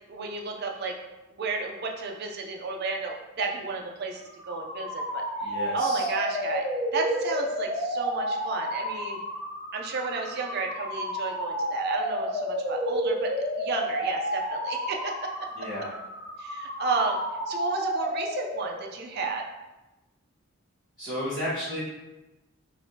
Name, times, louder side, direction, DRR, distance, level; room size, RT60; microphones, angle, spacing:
voice 1, 0.1-1.0 1.3-4.2 4.5-5.2 5.7-9.2 9.7-13.3 13.6-15.5 16.4-17.2 17.5-19.5, right 4 dB, 50° right, 1 dB, 0.4 m, -32 dB
sound 1, 4.2-18.9, equal, 40° left, 1.2 m, -31 dB
voice 2, 5.4-6.1 15.6-15.9 21.0-21.8, equal, 20° left, -15 dB, 1.3 m, -32 dB
3.3 x 3.2 x 2.7 m, 1.1 s
head